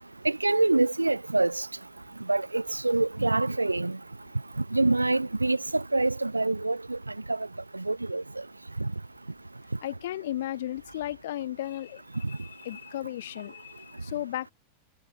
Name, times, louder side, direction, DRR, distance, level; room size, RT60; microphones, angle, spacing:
voice 1, 0.2-1.7 2.3-4.0 4.7-7.0 7.3-7.4 7.7-8.2 8.8-8.9, right 2 dB, 85° right, 0.6 m, -25 dB
voice 2, 9.8-12.0 12.3-14.5, left 13 dB, 60° left, 0.3 m, -35 dB
figure-of-eight pair, 90°, 0 cm